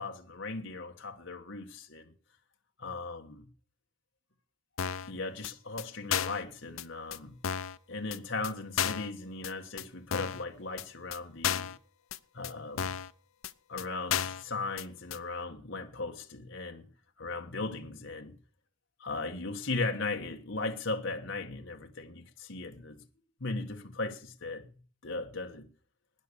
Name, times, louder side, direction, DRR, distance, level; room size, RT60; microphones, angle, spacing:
voice 1, 0.0-2.1 2.8-3.5 5.0-7.4 7.9-11.7 12.3-12.9 13.7-16.9 17.2-18.3 19.0-23.0 23.4-24.7 25.0-25.7, left 3 dB, 65° left, 1.5 m, -37 dB
sound 1, 4.8-5.1 5.4-5.5 5.8-5.9 6.1-6.4 6.8-6.9 7.1-7.2 7.4-7.8 8.1-8.2 8.4-8.5 8.8-9.1 9.4-9.5 9.8-9.9 10.1-10.4 10.8-10.9 11.1-11.2 11.4-11.8 12.1-12.2 12.4-12.5 12.8-13.1 13.4-13.5 13.8-13.9 14.1-14.4 14.8-14.9 15.1-15.2, left 8 dB, 80° left, 0.7 m, -32 dB
13.5 x 9.8 x 6.9 m
head